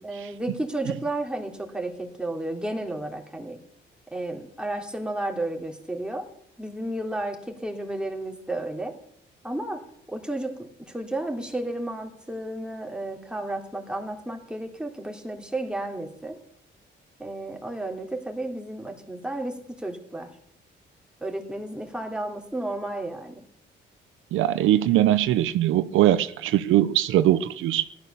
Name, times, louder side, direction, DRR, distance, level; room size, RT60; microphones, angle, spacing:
voice 1, 0.0-3.6 4.1-6.2 6.6-9.0 9.4-9.8 10.1-16.4 17.2-20.3 21.2-23.4, right 1 dB, 5° right, 2.9 m, -32 dB
voice 2, 24.3-27.8, right 13 dB, 85° right, 0.7 m, -21 dB
16.0 x 12.5 x 6.9 m
cardioid pair, 90°, 20 cm